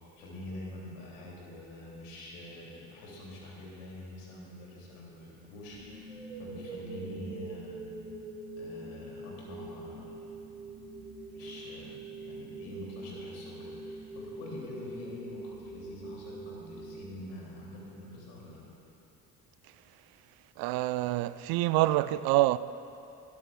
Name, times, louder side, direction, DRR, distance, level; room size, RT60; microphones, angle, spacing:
voice 1, 0.1-6.1 6.4-7.7 8.5-10.2 11.3-18.6, left 1 dB, 70° left, 3.0 m, -45 dB
sound 1, 5.7-17.7, right 2 dB, 90° right, 1.7 m, -44 dB
voice 2, 20.6-22.6, right 17 dB, 50° right, 0.4 m, -26 dB
17.5 x 13.0 x 2.4 m
figure-of-eight pair, 50°, 47 cm